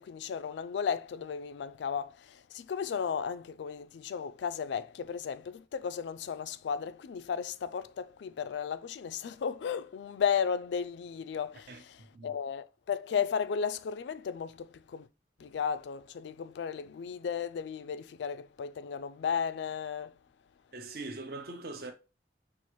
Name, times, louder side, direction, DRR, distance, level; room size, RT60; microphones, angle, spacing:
voice 1, 0.0-15.1 15.4-20.1, left 7 dB, 80° left, 0.3 m, -34 dB
voice 2, 11.7-12.3 20.7-21.9, right 2 dB, 55° right, 0.6 m, -42 dB
5.6 x 2.4 x 3.1 m
head